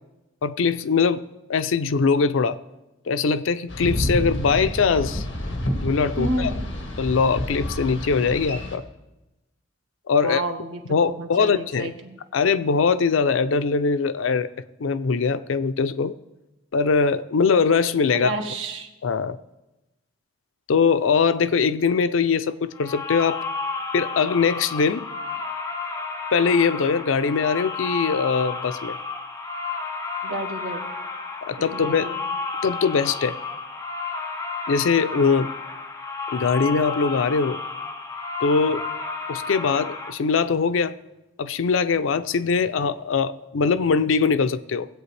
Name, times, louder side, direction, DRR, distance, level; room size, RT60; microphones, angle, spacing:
voice 1, 0.4-1.2 1.5-2.6 3.1-5.3 5.7-6.5 7.0-8.8 10.1-10.4 10.9-11.9 12.3-14.5 14.8-16.1 16.7-18.3 19.0-19.4 20.7-23.4 23.9-25.1 26.3-29.0 31.4-32.1 32.6-33.4 34.7-35.5 36.3-37.6 38.4-38.8 39.3-40.9 41.4-44.9, left 5 dB, 90° left, 0.5 m, -22 dB
Boat Water vehicle, 3.7-8.8, equal, 65° left, 1.7 m, -29 dB
voice 2, 6.2-6.7 10.2-12.2 18.1-18.9 30.2-30.9 31.7-32.2, right 2 dB, 80° right, 1.5 m, -30 dB
sound 1, 22.7-40.1, left 4 dB, 15° left, 0.8 m, -32 dB
19.0 x 8.3 x 3.3 m
head